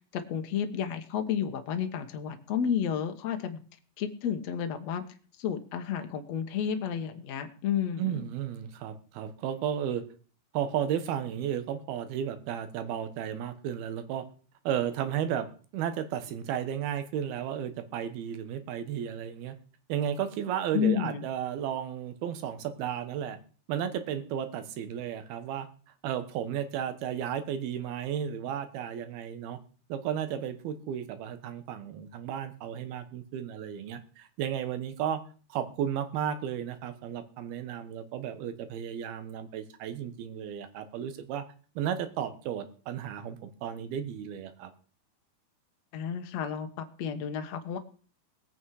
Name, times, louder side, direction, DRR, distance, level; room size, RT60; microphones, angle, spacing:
voice 1, 0.1-3.6 4.0-5.0 5.4-8.2 20.7-21.2 45.9-47.8, left 8 dB, 70° left, 7 dB, 1.6 m, -31 dB
voice 2, 8.0-10.0 10.5-14.3 14.6-19.6 19.9-23.4 23.7-25.7 26.0-29.6 29.9-35.2 35.5-41.4 41.8-44.7, right 9 dB, 70° right, 11 dB, 3.0 m, -33 dB
20.0 x 8.7 x 4.8 m, 0.40 s
omnidirectional pair, 4.9 m